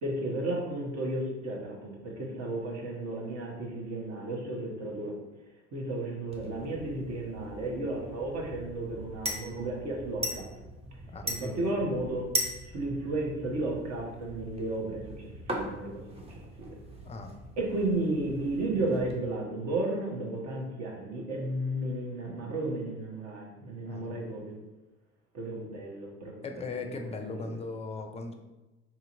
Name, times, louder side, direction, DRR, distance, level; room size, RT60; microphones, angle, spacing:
voice 1, 0.0-5.1 5.7-10.4 11.2-12.3 12.7-16.7 17.6-24.6 25.3-26.7 27.0-27.6, right 2 dB, 45° right, -1 dB, 1.2 m, -33 dB
sound 1, 6.3-19.1, equal, 15° right, 0.7 m, -40 dB
voice 2, 11.1-11.8 17.0-17.3 23.8-24.3 26.4-28.3, left 3 dB, 20° left, 5 dB, 0.4 m, -39 dB
4.3 x 2.8 x 2.6 m, 1.1 s
hypercardioid pair, 70°, 36 cm